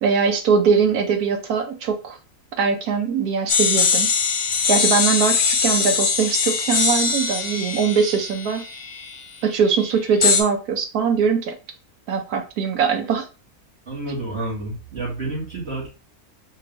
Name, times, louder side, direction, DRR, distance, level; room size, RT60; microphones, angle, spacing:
voice 1, 0.0-2.2 2.6-4.1 4.7-8.6 9.4-11.6 12.1-13.3, right 6 dB, 85° right, 6 dB, 1.2 m, -21 dB
sound 1, 3.5-9.2 10.2-10.4, left 5 dB, 65° left, 1.2 m, -21 dB
voice 2, 13.9-15.9, right 2 dB, 45° right, -5 dB, 2.2 m, -29 dB
4.5 x 2.8 x 3.3 m, 0.33 s
omnidirectional pair, 1.6 m